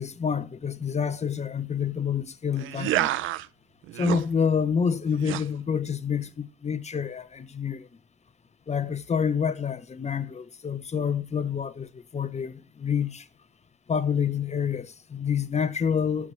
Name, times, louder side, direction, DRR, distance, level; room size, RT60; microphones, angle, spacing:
voice 1, 0.0-3.1 3.9-7.9 8.7-13.2 13.9-16.3, left 7 dB, 35° left, 1.0 m, -28 dB
sound 1, 2.6-3.5 3.8-4.2 5.2-5.4, right 14 dB, 90° right, 0.5 m, -28 dB
13.0 x 5.0 x 5.8 m
cardioid pair, 90°, 20 cm